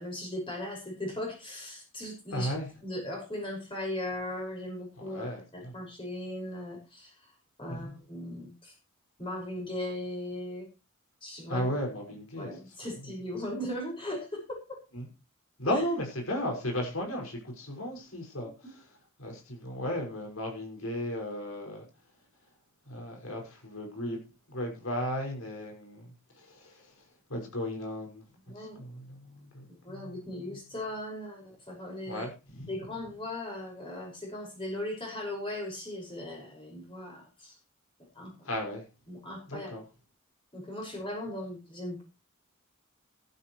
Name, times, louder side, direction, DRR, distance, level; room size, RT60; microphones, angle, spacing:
voice 1, 0.0-2.5 2.8-7.1 7.6-8.7 9.2-10.7 11.2-11.7 12.4-14.8 15.6-15.8 18.4-18.7 28.5-28.8 29.8-32.3 32.7-37.6 38.2-38.3 39.1-39.8 40.5-42.0, left 1 dB, 25° left, 5.7 m, -38 dB
voice 2, 2.3-2.7 5.0-5.7 7.7-7.9 11.5-12.5 14.9-15.1 15.6-18.9 19.2-21.8 22.9-24.2 24.5-26.1 26.4-26.9 27.3-28.3 28.6-30.6 32.0-32.7 38.4-38.9 39.5-39.8, left 1 dB, 90° left, 5.9 m, -35 dB
15.5 x 12.5 x 3.2 m
head